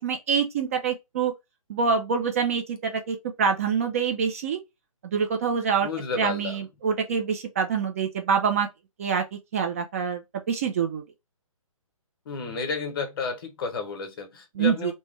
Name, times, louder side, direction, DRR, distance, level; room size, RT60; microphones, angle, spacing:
voice 1, 0.0-1.3 1.7-4.6 5.0-5.9 6.2-8.7 9.0-9.2 9.5-10.2 10.5-11.0 14.6-14.9, right 6 dB, 25° right, 0.4 m, -25 dB
voice 2, 5.8-6.6 12.3-14.9, left 4 dB, 40° left, 0.8 m, -31 dB
3.2 x 2.1 x 3.1 m
figure-of-eight pair, 135°, 18 cm